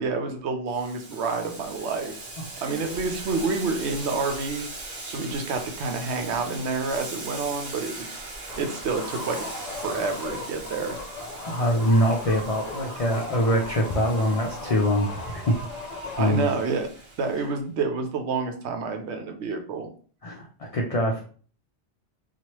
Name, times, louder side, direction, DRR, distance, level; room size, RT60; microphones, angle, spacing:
voice 1, 0.0-2.1 2.6-4.7 5.0-8.1 8.6-9.5 9.8-11.0 16.2-16.9 17.2-19.9, right 4 dB, 80° right, 5 dB, 0.9 m, -28 dB
Boiling, 0.7-17.5, right 2 dB, 50° right, 0.9 m, -40 dB
sound 1, 8.5-16.8, left 2 dB, 40° left, 0.7 m, -37 dB
voice 2, 11.5-15.5 16.2-16.5 20.2-21.2, equal, 65° left, -1 dB, 0.3 m, -24 dB
3.0 x 2.4 x 2.9 m, 0.43 s
omnidirectional pair, 1.2 m